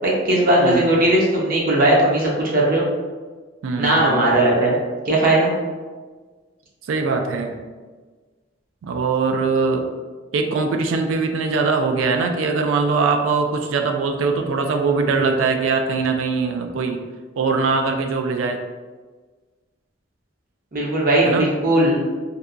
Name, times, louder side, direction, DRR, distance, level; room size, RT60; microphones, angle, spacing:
voice 1, 0.0-2.8 3.8-4.8 5.1-5.5 20.7-22.0, right 1 dB, 45° right, -4 dB, 0.6 m, -18 dB
voice 2, 3.6-4.0 6.9-7.6 8.8-9.9 10.3-17.0 17.4-18.6 21.2-21.5, right 4 dB, 85° right, 5 dB, 0.3 m, -21 dB
2.7 x 2.2 x 2.4 m, 1.4 s
head